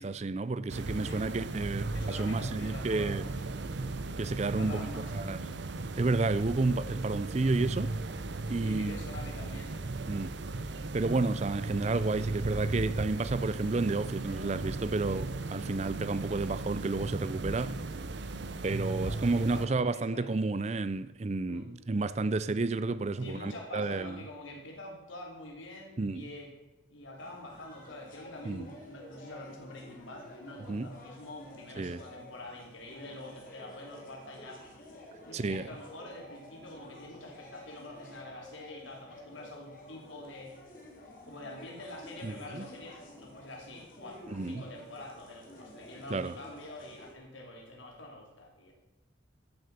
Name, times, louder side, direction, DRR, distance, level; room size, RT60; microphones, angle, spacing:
voice 1, 0.0-3.3 4.2-5.4 5.9-7.9 8.5-9.0 10.1-10.4 10.9-17.8 18.6-24.2 26.0-26.3 28.5-28.7 30.7-30.9 31.8-32.0 35.3-35.7 42.2-42.7 44.3-44.6 46.1-46.3, right 3 dB, 35° right, 0.4 m, -31 dB
sound 1, 0.7-19.7, right 2 dB, 60° right, 0.8 m, -36 dB
voice 2, 1.9-3.5 4.4-5.1 8.6-9.9 18.9-20.4 21.5-21.7 23.2-26.5 26.9-34.6 35.2-40.6 41.2-48.7, left 1 dB, 75° left, 3.4 m, -46 dB
sound 2, 27.2-47.1, left 1 dB, 45° left, 3.1 m, -51 dB
14.0 x 7.8 x 6.9 m
head